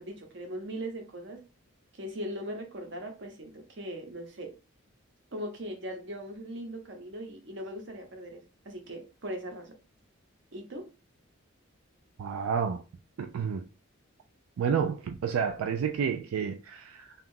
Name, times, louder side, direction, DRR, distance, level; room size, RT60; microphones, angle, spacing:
voice 1, 0.0-1.4 1.9-4.6 5.3-9.7 10.5-10.9, equal, 55° right, 0.8 m, -39 dB
voice 2, 12.2-12.8 13.2-13.7 14.6-17.1, right 7 dB, 85° right, 0.3 m, -30 dB
2.7 x 2.3 x 3.6 m
head